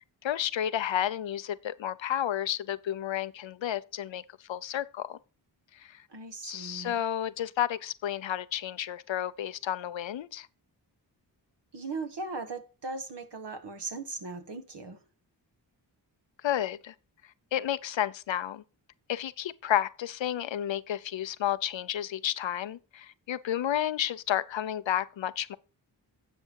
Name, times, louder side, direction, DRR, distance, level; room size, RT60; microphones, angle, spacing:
voice 1, 0.2-4.2 4.5-5.2 5.8-6.0 6.4-10.5 16.4-16.9 17.5-18.6 19.1-25.6, left 11 dB, 75° left, 0.8 m, -31 dB
voice 2, 6.1-6.9 11.7-15.0, right 3 dB, 60° right, 1.8 m, -38 dB
11.0 x 7.2 x 4.7 m
cardioid pair, 40°, 45 cm